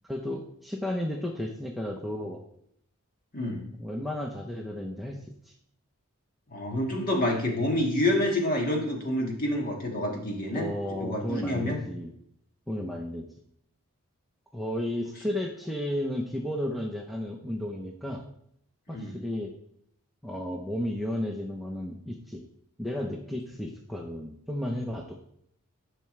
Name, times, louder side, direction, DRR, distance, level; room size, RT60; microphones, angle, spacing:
voice 1, 0.0-2.4 3.8-5.2 5.4-5.5 10.5-12.1 12.7-13.3 14.5-18.2 18.9-19.5 20.2-22.4 22.8-25.2, left 1 dB, ahead, -1 dB, 0.6 m, -33 dB
voice 2, 6.5-10.7 11.0-11.8 18.9-19.2, left 1 dB, 40° left, 0 dB, 1.6 m, -28 dB
10.5 x 5.8 x 3.2 m, 0.71 s
head